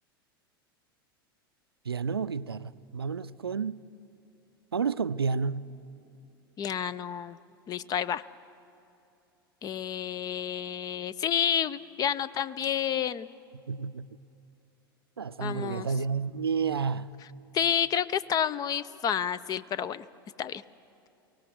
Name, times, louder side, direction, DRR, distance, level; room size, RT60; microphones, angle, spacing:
voice 1, 1.8-3.8 4.7-5.7 13.7-14.1 15.2-17.1, right 5 dB, 90° right, 0.4 m, -30 dB
voice 2, 6.6-7.4 7.7-8.2 9.6-13.3 15.4-15.9 17.5-20.0 20.4-20.6, left 9 dB, 30° left, 0.6 m, -30 dB
23.5 x 18.0 x 7.6 m
figure-of-eight pair, 85°, 12 cm